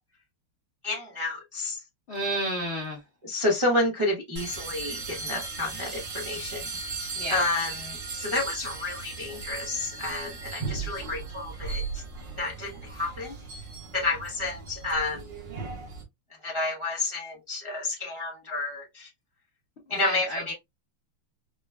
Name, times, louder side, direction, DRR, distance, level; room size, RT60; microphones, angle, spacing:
voice 1, 0.8-1.8 3.3-6.6 7.3-7.7 8.1-11.8 12.4-13.3 13.9-15.2 16.4-19.1 19.9-20.5, left 2 dB, 45° right, 0.4 m, -30 dB
voice 2, 2.1-3.0 7.1-7.4 19.9-20.5, right 1 dB, 75° left, 0.6 m, -31 dB
sound 1, 4.4-16.0, right 4 dB, 60° right, 1.8 m, -37 dB
5.1 x 2.1 x 2.2 m
omnidirectional pair, 2.4 m